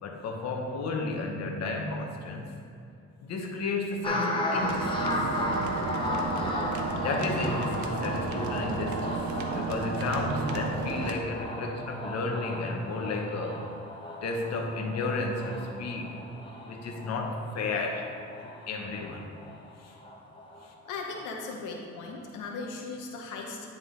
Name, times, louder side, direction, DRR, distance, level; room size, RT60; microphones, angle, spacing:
voice 1, 0.0-2.5 3.2-5.1 7.0-9.2 9.5-13.7 14.2-16.3 16.6-18.1 18.4-19.3 19.8-19.9 20.6-20.7, left 3 dB, 60° left, 2 dB, 0.9 m, -32 dB
sound 1, 4.0-20.7 21.0-21.4, left 1 dB, 15° left, 1.0 m, -35 dB
sound 2, 4.6-11.2, right 4 dB, 75° right, 0.7 m, -33 dB
voice 2, 20.8-23.7, left 3 dB, 90° left, 0 dB, 0.9 m, -38 dB
9.9 x 3.7 x 3.8 m, 2.6 s
cardioid pair, 90°, 30 cm